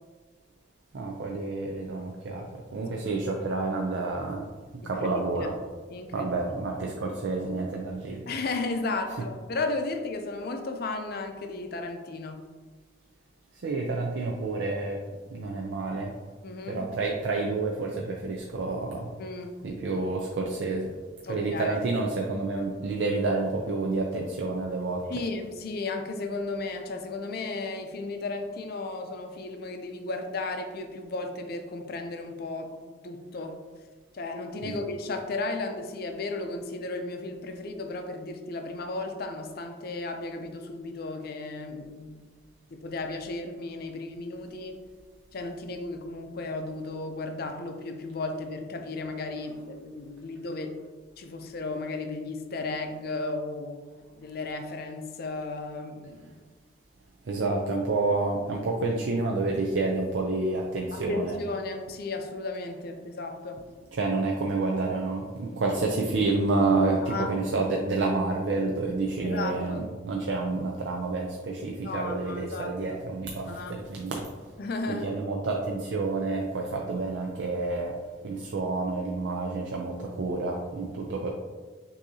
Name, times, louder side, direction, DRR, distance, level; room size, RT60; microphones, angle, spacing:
voice 1, 0.9-4.5 4.7-5.5 6.1-8.2 13.6-15.0 15.3-16.1 16.7-19.1 19.6-20.9 21.3-25.0 34.6-34.8 57.2-61.4 63.9-74.3 74.9-77.9 78.2-81.3, right 3 dB, 70° right, 0 dB, 0.4 m, -29 dB
voice 2, 5.9-6.3 8.3-12.4 16.4-16.8 19.2-19.6 21.2-21.8 25.1-33.6 34.1-42.2 42.7-44.8 45.3-50.7 51.2-53.8 54.2-56.3 60.9-63.6 67.0-67.3 69.2-69.8 71.8-72.7 73.5-73.8 74.6-75.1, left 3 dB, 50° left, 5 dB, 0.5 m, -34 dB
6.1 x 2.7 x 2.7 m, 1.4 s
head